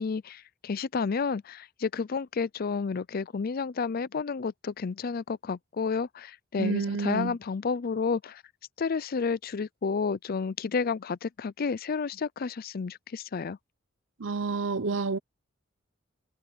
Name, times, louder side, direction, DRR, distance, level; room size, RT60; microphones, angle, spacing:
voice 1, 0.0-8.4 8.8-13.6, left 5 dB, 50° left, 0.5 m, -31 dB
voice 2, 6.6-7.4 14.2-15.2, right 4 dB, 75° right, 0.8 m, -29 dB
head